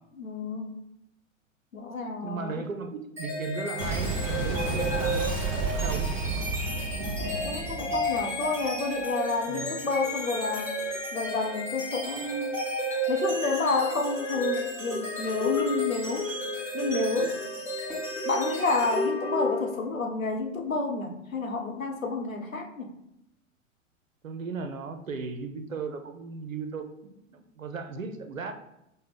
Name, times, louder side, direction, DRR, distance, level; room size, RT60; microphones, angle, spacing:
voice 1, 0.2-0.7 1.7-2.6 7.4-10.8 11.1-12.6 13.1-16.3 16.7-17.4 18.2-22.9, left 3 dB, 90° left, 3 dB, 0.7 m, -30 dB
voice 2, 2.2-5.3 5.7-6.1 9.5-9.8 24.2-28.5, right 4 dB, 85° right, 7 dB, 0.6 m, -36 dB
sound 1, 3.2-19.8, left 1 dB, 5° right, 0.9 m, -32 dB
Boom, 3.8-9.0, right 3 dB, 35° right, 0.8 m, -31 dB
5.2 x 2.1 x 3.4 m, 0.82 s
figure-of-eight pair, 100°, 39 cm